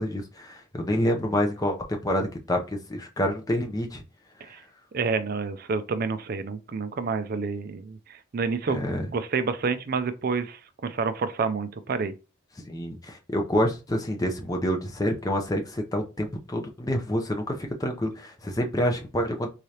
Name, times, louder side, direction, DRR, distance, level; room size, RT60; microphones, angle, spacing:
voice 1, 0.0-2.6 2.9-4.0 8.7-9.1 12.7-19.5, equal, 15° left, 0.5 m, -27 dB
voice 2, 4.9-8.8 9.1-12.1, right 4 dB, 45° right, 0.3 m, -29 dB
3.6 x 3.2 x 2.8 m
head